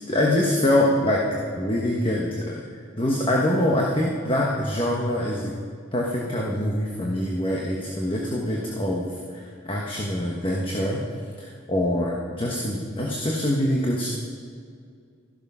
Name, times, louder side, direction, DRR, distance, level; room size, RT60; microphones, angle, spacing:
voice 1, 0.1-2.6 3.0-5.5 5.9-11.0 11.4-14.1, left 1 dB, 25° left, -2 dB, 1.2 m, -24 dB
13.5 x 12.0 x 5.5 m, 2.2 s
head